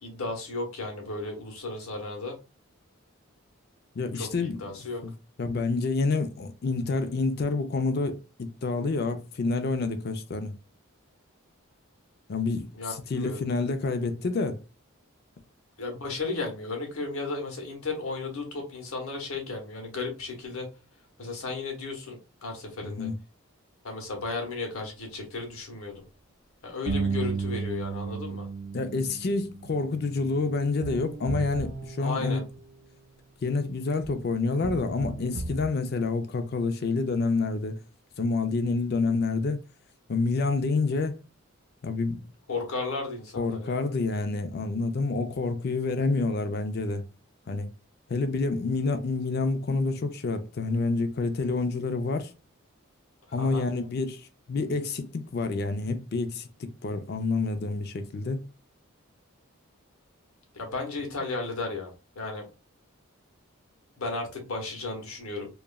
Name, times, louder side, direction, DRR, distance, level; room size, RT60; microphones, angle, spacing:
voice 1, 0.0-2.4 4.1-5.0 12.7-13.4 15.8-20.7 21.2-23.1 23.8-26.0 26.6-28.5 32.0-32.4 42.5-43.8 53.3-53.7 60.5-62.4 64.0-65.5, left 3 dB, 85° left, 1.0 m, -34 dB
voice 2, 4.0-4.6 5.0-5.1 5.4-10.5 12.3-12.7 13.1-14.6 22.8-23.1 28.7-32.4 33.4-37.8 38.2-39.6 40.1-41.2 41.8-42.2 43.4-47.0 47.5-47.7 48.1-52.3 53.3-58.4, left 3 dB, 45° left, 0.4 m, -28 dB
sound 1, 26.9-32.8 34.0-34.1 34.6-35.7, right 4 dB, 45° right, 0.3 m, -34 dB
2.9 x 2.4 x 2.2 m
head